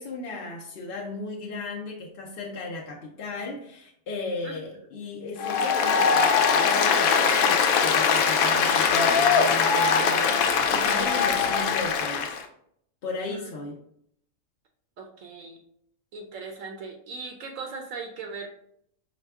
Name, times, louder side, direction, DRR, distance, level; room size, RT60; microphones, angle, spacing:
voice 1, 0.0-12.4 13.0-13.8, left 3 dB, 55° left, -2 dB, 0.7 m, -36 dB
Applause, 5.4-12.4, left 6 dB, 90° left, 1.0 m, -21 dB
voice 2, 15.0-15.6 16.1-18.5, right 4 dB, 75° right, 3 dB, 0.9 m, -38 dB
4.9 x 2.2 x 3.4 m, 0.70 s
omnidirectional pair, 1.4 m